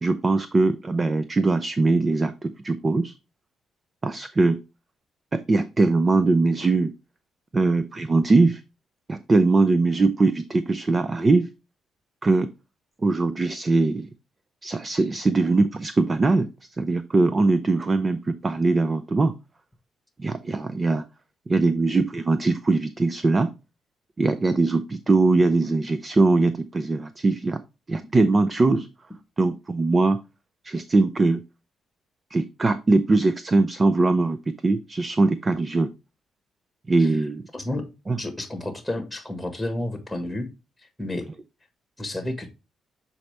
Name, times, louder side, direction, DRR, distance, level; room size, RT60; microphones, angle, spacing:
voice 1, 0.0-3.1 4.0-4.6 5.3-6.9 7.5-8.6 9.1-11.5 12.2-12.5 13.0-14.1 14.6-19.4 20.2-21.0 21.5-23.5 24.2-27.6 27.9-28.9 29.4-30.2 30.6-31.4 32.3-35.9 36.9-37.4 38.1-38.2, right 3 dB, 30° right, 0.5 m, -21 dB
voice 2, 37.5-37.9 38.2-40.5 40.8-41.3 42.0-42.5, left 1 dB, 5° left, 1.4 m, -31 dB
7.1 x 4.2 x 3.3 m
cardioid pair, 90°, 0 cm